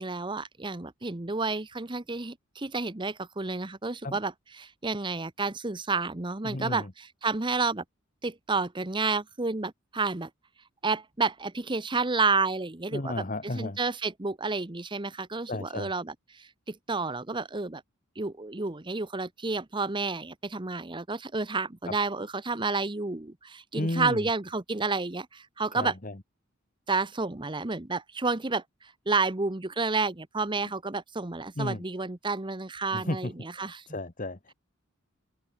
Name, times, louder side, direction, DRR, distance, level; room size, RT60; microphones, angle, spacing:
voice 1, 0.0-4.3 4.6-7.8 8.2-10.3 10.8-17.8 18.2-25.9 26.9-33.8, right 3 dB, 25° right, 1.0 m, -30 dB
voice 2, 6.4-6.9 12.9-13.8 15.5-15.9 21.9-22.0 23.7-24.3 25.7-26.2 31.5-31.8 32.9-34.5, left 1 dB, 40° left, 1.7 m, -33 dB
head